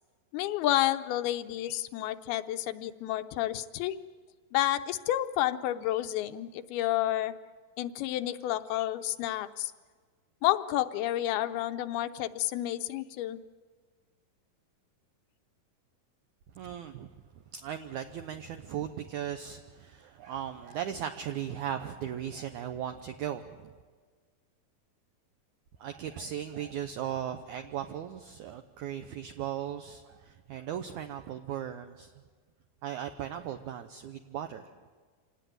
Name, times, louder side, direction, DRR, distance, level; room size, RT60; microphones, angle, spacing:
voice 1, 0.3-4.0 4.5-7.3 7.8-9.7 10.4-13.4, left 13 dB, 85° left, 9 dB, 2.8 m, -30 dB
voice 2, 16.6-17.1 17.5-23.7 25.8-32.1 32.8-34.7, right 9 dB, 75° right, 7 dB, 1.9 m, -37 dB
26.5 x 18.5 x 9.3 m, 1.5 s
omnidirectional pair, 4.3 m